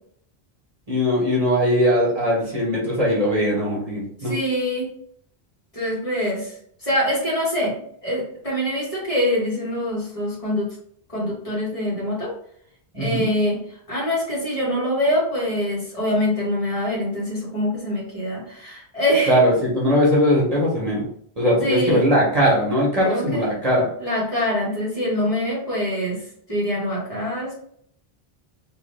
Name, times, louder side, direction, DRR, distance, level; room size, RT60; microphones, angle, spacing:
voice 1, 0.9-4.3 12.9-13.3 19.3-21.0 21.4-23.9, equal, 40° right, -5 dB, 1.2 m, -20 dB
voice 2, 4.2-4.9 5.7-10.7 11.1-12.3 12.9-19.4 21.6-22.0 23.0-23.4 24.0-26.2 26.5-27.5, left 1 dB, 35° left, -6 dB, 1.8 m, -24 dB
3.3 x 3.2 x 3.3 m, 0.65 s
omnidirectional pair, 1.0 m